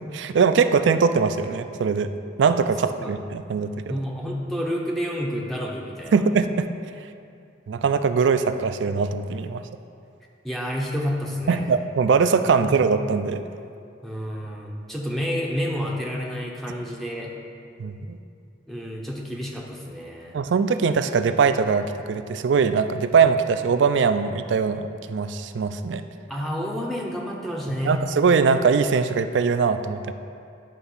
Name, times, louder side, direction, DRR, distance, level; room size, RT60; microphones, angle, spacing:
voice 1, 0.1-2.1 2.4-4.0 6.1-6.7 7.7-9.7 11.5-13.4 17.8-18.2 20.3-26.0 27.8-30.1, right 5 dB, 75° right, 10 dB, 0.4 m, -21 dB
voice 2, 3.9-6.2 10.4-11.6 12.6-12.8 14.0-17.3 18.7-20.3 26.3-28.1, equal, ahead, -2 dB, 0.6 m, -29 dB
10.0 x 3.4 x 5.5 m, 2.4 s
head